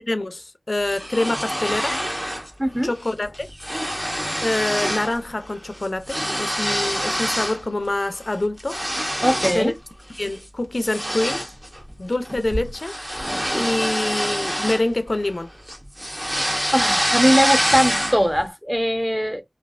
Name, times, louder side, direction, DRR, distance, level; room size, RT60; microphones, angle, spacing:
voice 1, 0.1-2.0 2.8-3.5 4.4-8.8 9.5-9.7 10.2-11.4 12.0-13.0 13.5-15.5, left 2 dB, 75° left, 0.4 m, -25 dB
sound 1, 0.8-2.5 2.8-3.1 3.3-5.2 5.5-7.6 8.1-9.7 10.1-10.4 10.8-15.3 15.7-18.4, equal, 20° right, 1.0 m, -26 dB
voice 2, 2.6-2.9 9.2-9.7 16.7-19.4, equal, 5° right, 0.7 m, -20 dB
3.2 x 2.3 x 2.3 m
wide cardioid pair, 40°, 0 cm